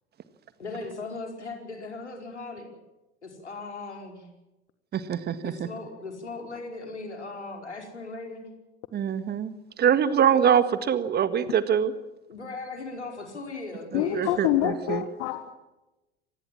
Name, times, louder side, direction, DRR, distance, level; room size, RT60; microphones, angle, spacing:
voice 1, 0.6-2.7 3.2-4.3 5.4-8.5 12.3-14.4, left 3 dB, 80° left, 4 dB, 5.0 m, -38 dB
voice 2, 4.9-5.7 8.9-11.9 13.9-15.0, right 8 dB, 30° right, 13 dB, 1.7 m, -24 dB
voice 3, 13.9-15.6, left 14 dB, 50° left, 10 dB, 1.6 m, -27 dB
25.5 x 20.0 x 7.5 m, 1.0 s
figure-of-eight pair, 80°, 34 cm